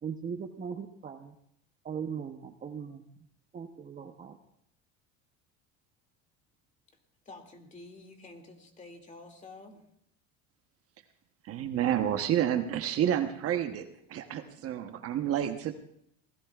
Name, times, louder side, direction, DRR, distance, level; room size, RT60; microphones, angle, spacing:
voice 1, 0.0-1.3 1.8-3.1 3.5-4.4, right 7 dB, 25° right, 5 dB, 0.8 m, -39 dB
voice 2, 7.3-9.8, left 2 dB, 25° left, 4 dB, 2.4 m, -49 dB
voice 3, 11.4-15.7, right 10 dB, 50° right, 7 dB, 1.0 m, -29 dB
25.5 x 17.5 x 2.4 m, 0.72 s
cardioid pair, 125°, 31 cm